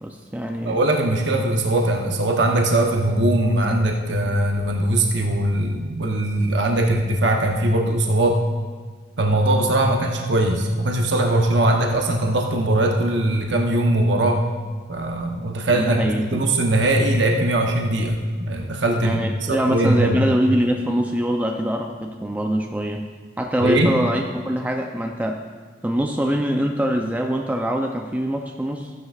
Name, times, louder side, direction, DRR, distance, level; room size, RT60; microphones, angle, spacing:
voice 1, 0.0-0.8 15.7-16.6 18.9-23.1 23.4-25.4 25.8-28.9, equal, 10° right, 2 dB, 0.4 m, -24 dB
voice 2, 0.6-8.4 9.2-14.4 14.9-19.2 19.5-20.3 23.6-23.9, right 1 dB, 65° right, 1 dB, 0.9 m, -20 dB
14.5 x 9.5 x 2.4 m, 1.6 s
head